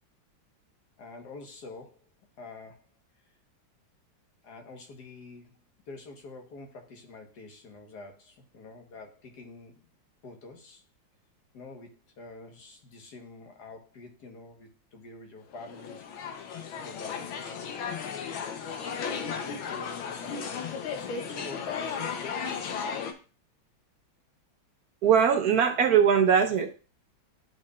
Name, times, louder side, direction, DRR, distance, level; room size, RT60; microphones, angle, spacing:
voice 1, 1.0-2.1 2.4-2.9 4.4-5.6 5.9-9.9 10.2-10.8 11.5-17.7 19.1-22.6, left 3 dB, 55° left, 4 dB, 1.7 m, -47 dB
sound 1, 15.5-23.1, left 6 dB, 90° left, 1.7 m, -35 dB
voice 2, 25.0-26.7, right 7 dB, 70° right, 7 dB, 0.9 m, -21 dB
11.0 x 5.2 x 2.4 m, 0.35 s
omnidirectional pair, 2.1 m